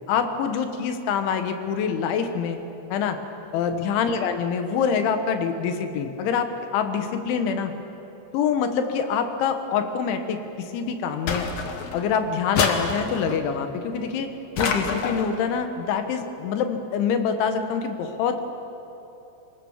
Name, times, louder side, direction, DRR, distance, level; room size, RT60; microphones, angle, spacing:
voice 1, 0.1-2.6 2.9-3.2 3.5-7.7 8.3-11.5 11.9-14.3 14.6-18.5, left 6 dB, 90° left, 7 dB, 3.8 m, -25 dB
sound 1, 11.3-12.1 12.5-13.4 14.6-15.4, left 4 dB, 70° left, 1.5 m, -27 dB
25.5 x 20.5 x 7.3 m, 3.0 s
omnidirectional pair, 5.2 m